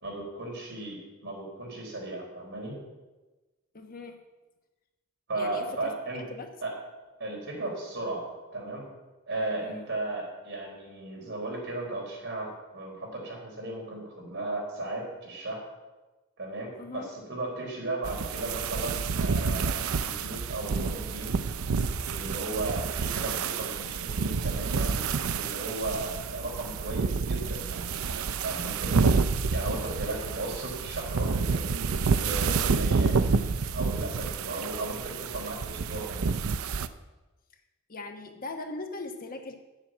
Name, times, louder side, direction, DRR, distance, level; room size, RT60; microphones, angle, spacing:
voice 1, 0.0-2.8 5.3-6.2 6.6-6.8 7.2-8.8 9.3-15.7 16.4-21.3 22.1-25.0 25.3-29.0 29.5-31.8 32.2-33.2 33.7-36.3, right 2 dB, 60° right, -1 dB, 4.2 m, -36 dB
voice 2, 3.7-4.2 5.4-5.9 6.3-6.5 9.6-9.9 16.8-17.1 37.9-39.5, left 2 dB, 40° left, 5 dB, 1.1 m, -39 dB
sound 1, 18.0-36.9, right 5 dB, 80° right, 0.5 m, -29 dB
9.8 x 7.5 x 7.4 m, 1.1 s
head